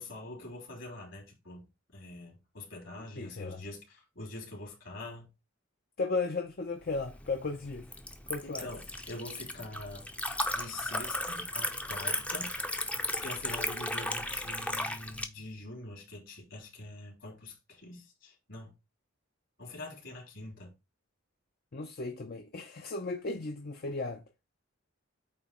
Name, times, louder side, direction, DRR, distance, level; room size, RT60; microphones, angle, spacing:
voice 1, 0.0-1.7 1.9-5.3 8.4-10.1 10.5-12.5 13.1-18.7 19.6-20.7, left 2 dB, 65° left, 3.4 m, -44 dB
voice 2, 3.2-3.6 6.0-7.9 8.3-8.7 21.7-24.2, left 3 dB, 50° left, 0.6 m, -35 dB
Liquid, 6.9-15.3, left 1 dB, 5° left, 0.6 m, -35 dB
8.5 x 3.0 x 4.3 m
head